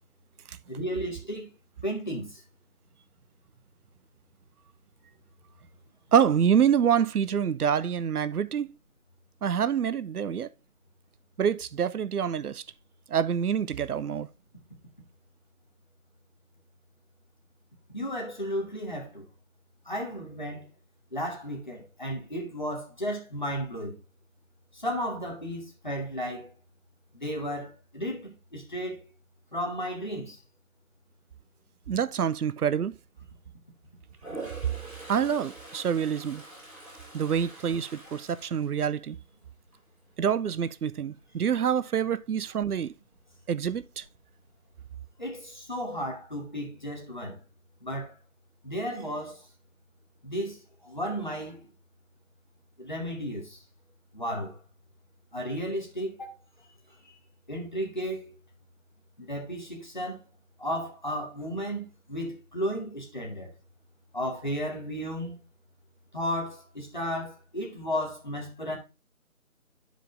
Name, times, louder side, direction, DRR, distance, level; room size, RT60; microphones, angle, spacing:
voice 1, 0.7-1.5 1.8-2.4 17.9-19.2 19.8-20.6 21.1-24.0 24.7-26.5 27.1-29.1 29.5-30.4 45.2-47.4 47.8-48.1 48.6-49.4 50.2-51.7 52.8-53.6 54.1-54.6 55.3-56.3 57.5-58.3 59.2-60.2 60.6-63.5 64.1-65.4 66.1-68.8, equal, 30° left, 1.4 m, -34 dB
voice 2, 6.1-8.7 9.4-10.5 11.4-12.6 13.1-14.3 31.9-32.9 35.1-36.4 37.1-39.2 40.2-42.9 43.5-44.0, right 8 dB, 85° right, 0.6 m, -26 dB
Toilet flush, 34.1-39.3 39.7-40.1 44.6-44.7 44.9-45.7, right 2 dB, 45° right, 4.5 m, -45 dB
11.5 x 4.9 x 2.5 m
figure-of-eight pair, 180°, 44 cm